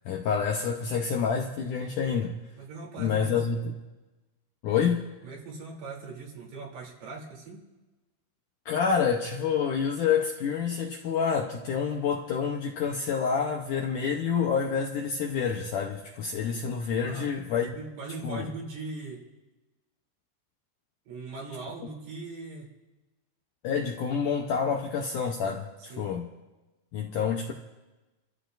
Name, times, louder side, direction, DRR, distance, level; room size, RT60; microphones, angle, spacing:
voice 1, 0.1-2.4 3.0-3.7 4.6-5.1 8.7-17.7 18.2-18.5 23.6-26.3 26.9-27.5, left 6 dB, 75° left, 1.9 m, -28 dB
voice 2, 2.6-3.4 5.2-7.7 17.0-17.3 17.8-19.2 21.1-22.7 25.8-26.1, right 3 dB, 75° right, 5.1 m, -40 dB
29.5 x 13.5 x 2.6 m
omnidirectional pair, 4.7 m